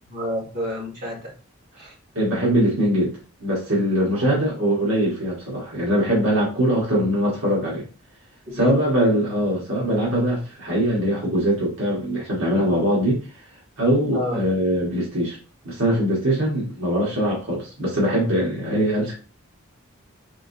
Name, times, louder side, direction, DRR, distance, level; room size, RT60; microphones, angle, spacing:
voice 1, 0.1-1.3 1.8-1.9 4.1-4.3 6.9-7.0 8.5-8.8 14.1-14.4, left 1 dB, 35° right, -6 dB, 2.1 m, -29 dB
voice 2, 2.1-3.1 3.4-7.8 8.5-13.2 13.8-15.4 15.6-19.1, equal, 65° right, -5 dB, 1.5 m, -22 dB
3.7 x 3.6 x 2.7 m, 0.36 s
head